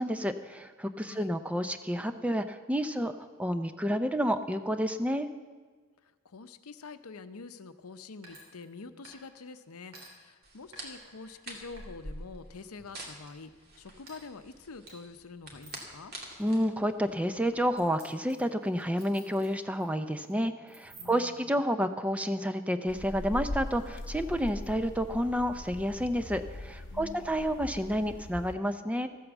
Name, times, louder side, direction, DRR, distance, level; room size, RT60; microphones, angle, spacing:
voice 1, 0.0-3.1 3.4-5.3 16.4-29.1, equal, 5° right, 9 dB, 0.5 m, -30 dB
voice 2, 1.0-1.3 6.0-16.1 21.0-21.6 26.9-27.5, left 4 dB, 90° left, 10 dB, 0.7 m, -47 dB
sound 1, 8.2-8.8 9.0-9.5 9.9-10.1 10.7-11.3 11.8-12.6 13.0-13.4 14.0-14.2 14.9-15.0 15.5-15.9 16.4-16.6 17.7-19.8 20.1-20.3 20.7-21.4, right 2 dB, 75° right, 3.5 m, -53 dB
sound 2, 10.4-17.7, right 1 dB, 45° right, 2.3 m, -47 dB
sound 3, 22.9-28.5, left 1 dB, 55° left, 0.8 m, -41 dB
14.0 x 8.5 x 7.2 m, 1.5 s
head